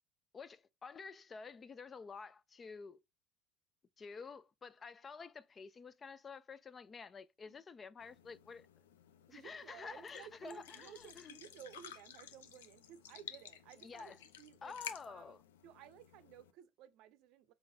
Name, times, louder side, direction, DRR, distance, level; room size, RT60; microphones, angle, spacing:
voice 1, 0.3-3.0 4.0-8.7 9.3-11.4 13.8-14.2 14.6-15.4, left 5 dB, 35° left, 0.4 m, -50 dB
sound 1, 8.0-16.5, left 9 dB, 90° left, 0.4 m, -54 dB
voice 2, 9.3-14.1 14.4-14.8 15.1-17.5, right 10 dB, 65° right, 0.5 m, -56 dB
4.3 x 3.8 x 2.6 m
hypercardioid pair, 75°, 0 cm